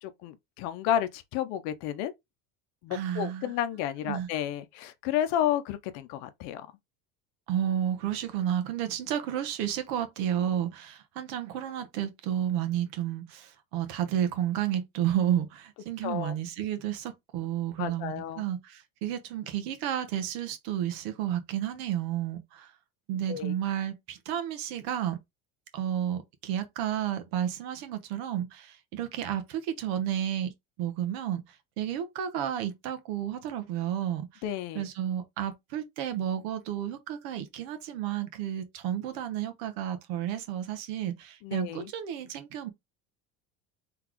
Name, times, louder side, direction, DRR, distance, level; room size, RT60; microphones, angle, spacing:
voice 1, 0.0-2.1 2.8-6.7 16.0-16.3 17.8-18.4 23.3-23.5 34.4-34.8 41.4-41.9, left 10 dB, 55° left, 0.7 m, -31 dB
voice 2, 2.9-3.6 4.0-4.3 7.5-22.7 23.1-25.2 25.7-30.5 30.8-31.4 31.8-34.4 34.7-42.7, right 10 dB, 70° right, 1.1 m, -31 dB
4.0 x 3.3 x 3.0 m
cardioid pair, 175°, 31 cm